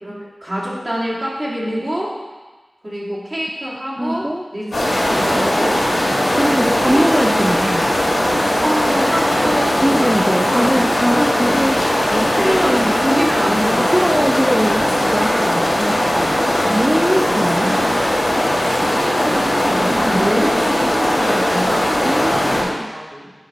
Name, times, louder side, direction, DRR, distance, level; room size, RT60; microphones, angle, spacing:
voice 1, 0.0-2.1 2.8-4.3 4.5-4.7 4.9-5.8 6.5-7.0 7.4-7.7 8.6-10.1 10.4-10.8 11.2-11.6 12.3-13.9 17.6-17.7 18.8-23.3, equal, 40° right, -7 dB, 2.0 m, -25 dB
voice 2, 4.0-4.4 5.3-5.7 6.3-7.8 9.8-11.8 12.1-12.9 13.8-17.7 19.9-20.1 22.0-22.9, equal, 10° right, 1 dB, 0.4 m, -21 dB
sound 1, 4.7-22.6, left 1 dB, 70° left, 1.9 m, -18 dB
8.7 x 5.0 x 2.9 m, 1.3 s
wide cardioid pair, 60°, 0 cm